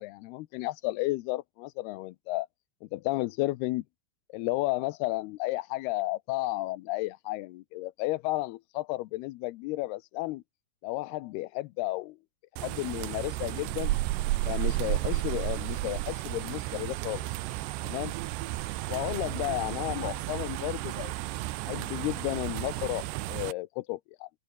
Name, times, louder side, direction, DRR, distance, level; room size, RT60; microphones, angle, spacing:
voice 1, 0.0-2.5 2.8-3.8 4.3-10.4 10.8-12.2 12.6-13.9 14.5-17.3 17.8-18.1 18.9-21.1 21.7-24.3, left 19 dB, 85° left, 2.4 m, -33 dB
sound 1, 12.6-23.5, right 17 dB, 75° right, 3.0 m, -33 dB
open air
omnidirectional pair, 5.2 m